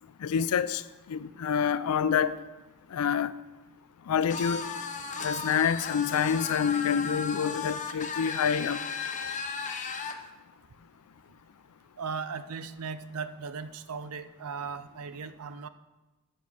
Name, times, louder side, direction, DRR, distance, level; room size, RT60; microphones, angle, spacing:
voice 1, 0.2-0.8 1.1-2.4 2.9-3.3 4.1-4.6 5.2-8.8, left 7 dB, 80° left, 0.4 m, -27 dB
sound 1, 4.3-10.2, left 5 dB, 35° left, 0.6 m, -35 dB
voice 2, 12.0-15.7, right 5 dB, 80° right, 0.5 m, -37 dB
7.2 x 6.4 x 6.2 m
head